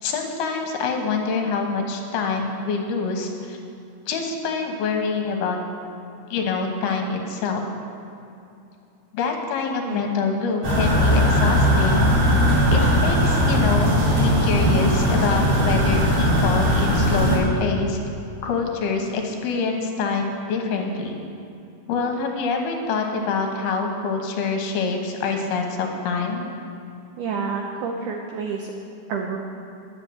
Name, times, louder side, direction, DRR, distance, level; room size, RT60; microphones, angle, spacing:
voice 1, 0.0-3.6 4.1-5.6 6.3-7.6 9.1-12.1 12.7-18.0 18.4-21.2 21.9-26.5, left 4 dB, 75° left, 2 dB, 3.0 m, -25 dB
sound 1, 10.6-17.4, equal, 40° right, 3.6 m, -19 dB
voice 2, 27.2-28.7 29.1-29.4, right 5 dB, 85° right, 1 dB, 1.8 m, -28 dB
11.0 x 8.0 x 7.8 m, 2.7 s
omnidirectional pair, 4.7 m